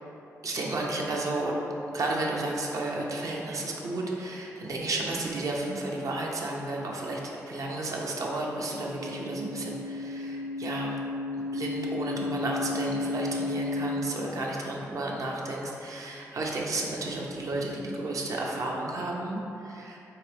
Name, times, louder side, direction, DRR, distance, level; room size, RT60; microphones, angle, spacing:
voice 1, 0.4-1.6 1.9-7.2 7.5-11.0 11.5-20.1, right 2 dB, 60° right, -2 dB, 0.7 m, -32 dB
sound 1, 8.2-14.0, left 2 dB, 65° left, 0.3 m, -34 dB
4.4 x 2.9 x 3.3 m, 2.9 s
cardioid pair, 60°, 6 cm